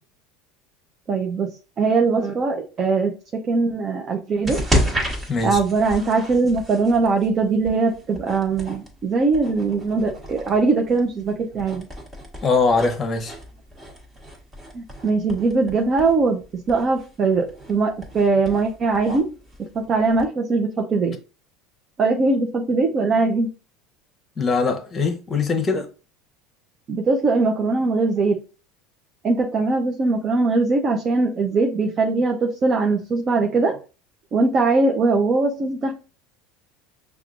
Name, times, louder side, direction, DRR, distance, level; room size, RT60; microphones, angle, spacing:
voice 1, 1.1-4.6 5.4-11.9 14.7-19.3 19.6-21.2 22.0-23.5 26.9-28.4 29.2-33.8 34.3-35.9, right 3 dB, 40° right, 0.7 m, -21 dB
sound 1, 4.4-20.3, equal, 20° right, 1.5 m, -32 dB
voice 2, 5.3-5.6 12.4-13.3 24.4-25.9, left 4 dB, 25° left, 0.9 m, -21 dB
5.8 x 2.3 x 2.5 m
hypercardioid pair, 85°, 0 cm